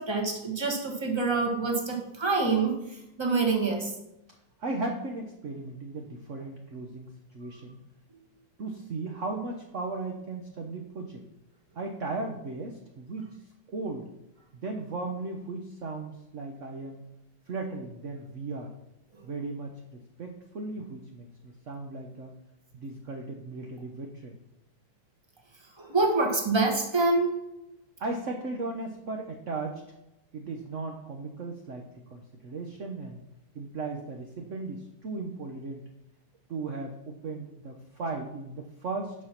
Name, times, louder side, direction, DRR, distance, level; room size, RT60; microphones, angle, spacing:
voice 1, 0.0-3.9 25.8-27.4, right 3 dB, 15° right, 1 dB, 1.4 m, -26 dB
voice 2, 4.6-7.8 8.6-11.2 11.7-13.3 13.7-14.1 14.5-17.0 17.5-18.7 19.2-22.3 22.7-24.3 28.0-29.8 30.3-33.2 33.5-35.8 36.5-39.1, right 3 dB, 50° right, 3 dB, 0.9 m, -36 dB
9.9 x 5.5 x 5.9 m, 0.90 s
omnidirectional pair, 2.3 m